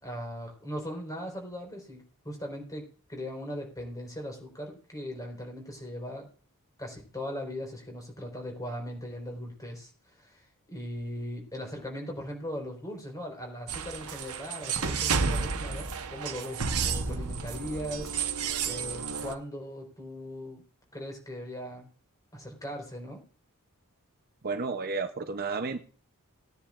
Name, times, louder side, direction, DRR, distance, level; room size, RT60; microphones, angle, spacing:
voice 1, 0.0-6.3 6.8-18.1 18.6-20.6 20.9-21.9 22.3-23.2, equal, 15° left, 1 dB, 4.5 m, -39 dB
sound 1, 13.7-19.3, right 5 dB, 85° right, 1.1 m, -31 dB
voice 2, 24.4-25.8, right 4 dB, 45° right, 8 dB, 0.7 m, -32 dB
19.5 x 10.0 x 2.5 m, 0.41 s
head